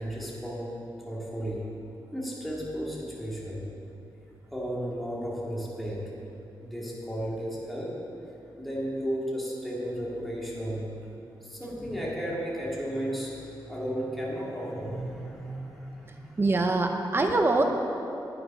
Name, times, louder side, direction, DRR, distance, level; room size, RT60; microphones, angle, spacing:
voice 1, 0.0-1.7 2.1-3.6 4.5-6.0 6.6-8.0 8.6-10.9 11.4-16.4, equal, ahead, -6 dB, 2.5 m, -34 dB
voice 2, 16.4-17.6, right 2 dB, 30° right, 4 dB, 0.7 m, -23 dB
10.5 x 9.1 x 5.6 m, 2.8 s
wide cardioid pair, 120°, 8 cm